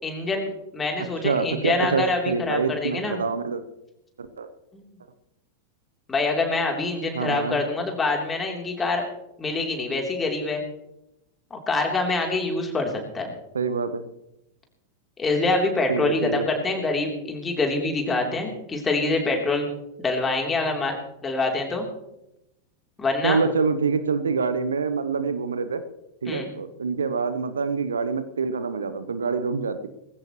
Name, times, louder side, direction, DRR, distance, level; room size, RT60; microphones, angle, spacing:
voice 1, 0.0-3.2 4.7-4.8 6.1-9.0 9.4-10.6 11.5-13.3 15.2-19.7 20.0-21.0 21.2-21.9 23.0-23.4 26.3-26.5, left 3 dB, 15° left, 1 dB, 3.5 m, -25 dB
voice 2, 1.2-3.6 4.2-4.5 7.1-7.6 13.5-14.0 15.9-16.5 23.2-25.8 26.2-29.9, right 5 dB, 70° right, 11 dB, 1.0 m, -26 dB
20.0 x 16.0 x 3.2 m, 0.88 s
figure-of-eight pair, 90°, 0 cm